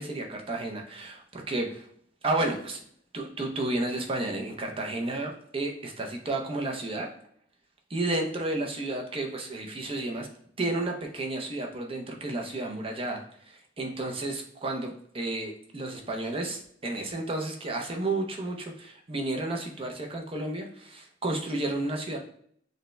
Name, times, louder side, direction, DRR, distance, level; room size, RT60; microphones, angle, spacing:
voice 1, 0.0-1.9 2.2-2.8 3.1-7.1 7.9-10.3 10.6-22.2, right 2 dB, 30° right, 2 dB, 0.6 m, -32 dB
6.4 x 2.2 x 3.2 m, 0.63 s
head